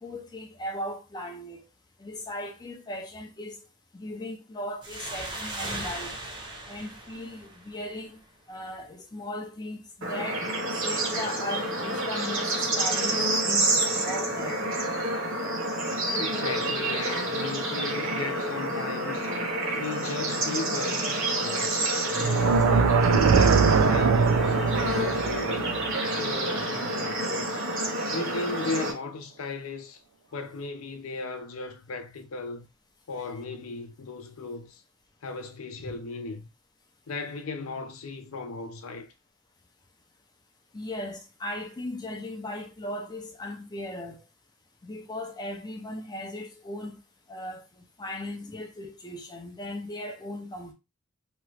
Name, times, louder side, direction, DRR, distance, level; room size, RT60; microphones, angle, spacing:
voice 1, 0.0-1.6 2.0-3.6 3.9-6.2 6.7-8.2 8.5-10.4 10.8-13.7 14.0-14.6 33.2-33.3 40.7-44.2 44.8-47.0 47.3-47.7 48.0-50.7, left 1 dB, 20° left, 0.4 m, -37 dB
sound 1, 4.8-8.2, right 2 dB, 20° right, 0.8 m, -38 dB
Bird / Insect / Frog, 10.0-28.9, right 1 dB, 60° right, 1.0 m, -28 dB
voice 2, 16.2-19.3 19.7-21.7 22.2-25.8 26.2-27.6 28.1-30.0 30.3-32.7 33.1-34.8 35.2-36.5 37.1-39.1, left 3 dB, 70° left, 0.5 m, -36 dB
sound 2, 22.1-27.3, right 5 dB, 85° right, 0.4 m, -23 dB
2.9 x 2.3 x 3.2 m
head